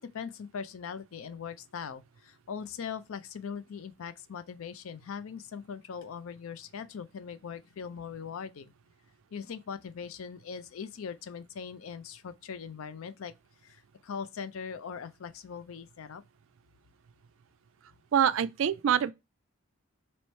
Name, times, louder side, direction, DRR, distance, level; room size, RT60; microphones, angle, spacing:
voice 1, 0.0-8.7 9.3-13.3 13.6-16.2, left 6 dB, 70° left, 0.4 m, -40 dB
voice 2, 18.1-19.1, right 9 dB, 65° right, 0.3 m, -25 dB
3.1 x 3.0 x 4.3 m
head